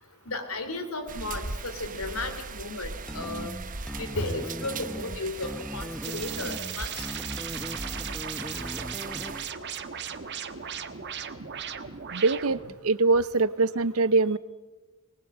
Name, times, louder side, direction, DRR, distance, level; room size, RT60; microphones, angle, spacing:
voice 1, 0.2-3.5 3.9-7.1, left 2 dB, 90° left, 7 dB, 3.4 m, -34 dB
sound 1, 1.1-9.5, right 4 dB, 40° right, 1.0 m, -40 dB
sound 2, 3.1-9.6, equal, 5° left, 1.0 m, -38 dB
sound 3, 6.0-12.8, right 8 dB, 55° right, 1.4 m, -37 dB
voice 2, 12.1-14.4, right 3 dB, 80° right, 17 dB, 0.7 m, -23 dB
22.5 x 20.5 x 7.9 m, 1.2 s
head